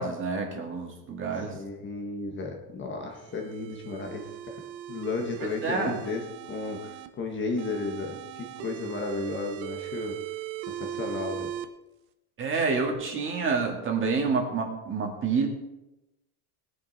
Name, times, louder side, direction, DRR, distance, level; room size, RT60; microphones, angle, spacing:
voice 1, 0.0-1.6 5.4-6.0 12.4-15.5, right 4 dB, 25° right, 2 dB, 2.0 m, -28 dB
voice 2, 1.3-4.6 4.9-6.2 6.5-10.1 10.7-11.5, left 3 dB, 25° left, 1 dB, 1.4 m, -34 dB
sound 1, 3.1-7.1 7.6-11.6, right 11 dB, 85° right, 1.3 m, -39 dB
19.5 x 9.7 x 4.1 m, 0.97 s
cardioid pair, 175°, 49 cm